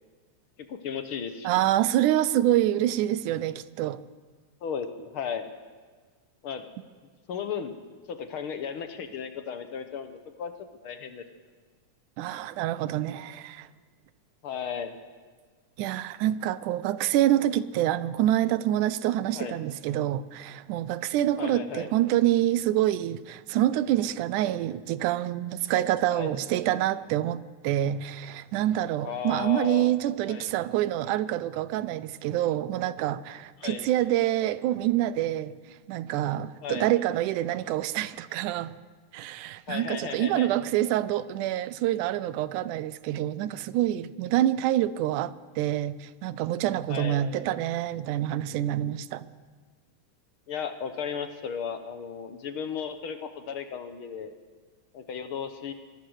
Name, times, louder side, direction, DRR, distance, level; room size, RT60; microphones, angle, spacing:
voice 1, 0.6-1.6 4.6-5.5 6.4-6.6 7.3-7.7 8.1-11.2 14.4-15.0 19.3-19.6 21.4-21.9 26.1-26.4 29.0-29.9 30.3-30.5 33.6-33.9 36.6-36.9 39.7-40.5 46.9-47.2 50.5-54.3 54.9-55.7, left 7 dB, 60° left, 1.5 m, -35 dB
voice 2, 1.4-4.0 12.2-13.7 15.8-35.5 35.9-38.8 39.1-49.3, right 13 dB, 85° right, 2.2 m, -26 dB
23.5 x 17.5 x 6.5 m
omnidirectional pair, 3.5 m